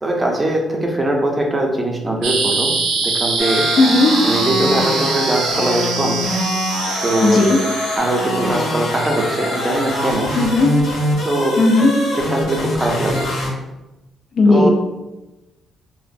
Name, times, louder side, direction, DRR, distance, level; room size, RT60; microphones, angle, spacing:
voice 1, 0.0-2.7 3.0-3.6 4.2-6.5 7.0-7.4 8.0-10.3 11.2-11.6 12.1-13.3 14.5-14.7, right 1 dB, 20° right, 1 dB, 0.5 m, -21 dB
sound 1, 2.2-8.0, right 4 dB, 85° right, 0.5 m, -23 dB
sound 2, 3.4-13.5, left 1 dB, 80° left, 0.8 m, -24 dB
voice 2, 3.8-4.1 7.2-7.6 10.3-10.7 11.6-11.9 14.4-14.7, left 2 dB, 55° left, 3 dB, 0.3 m, -14 dB
3.0 x 2.0 x 2.5 m, 1.0 s
cardioid pair, 90°, 0 cm